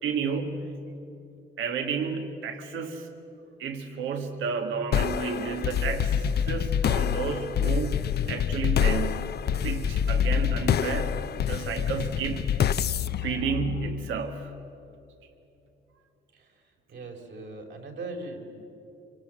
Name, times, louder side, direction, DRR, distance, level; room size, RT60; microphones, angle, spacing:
voice 1, 0.0-0.7 1.6-3.1 3.6-9.4 9.6-11.2 11.4-12.5 13.2-14.5, right 6 dB, 85° right, 6 dB, 1.9 m, -31 dB
sound 1, 4.9-14.4, left 8 dB, 55° left, 0.7 m, -27 dB
voice 2, 16.9-18.6, right 2 dB, 65° right, 2 dB, 4.0 m, -40 dB
26.0 x 24.0 x 7.7 m, 2.8 s
cardioid pair, 90°, 20 cm